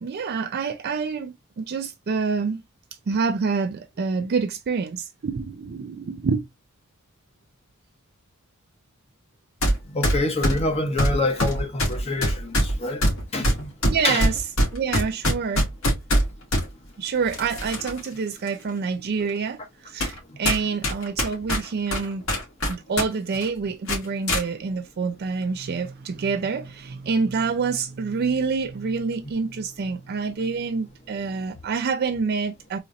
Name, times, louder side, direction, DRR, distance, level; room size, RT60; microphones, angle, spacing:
voice 1, 0.0-2.6 3.1-6.5 13.8-14.4 14.7-15.6 17.0-22.2 22.7-32.8, right 5 dB, 50° right, 0.4 m, -27 dB
sound 1, 9.6-9.8 10.0-16.7 17.3-18.0 18.5-18.6 19.3-19.4 20.0-20.2 20.4-23.1 23.3-23.5 23.9-24.4, equal, 75° left, 2.1 m, -23 dB
voice 2, 9.9-13.1 13.3-13.7 14.0-14.2 20.3-20.4, left 2 dB, 30° left, 0.8 m, -26 dB
3.9 x 3.0 x 2.5 m
head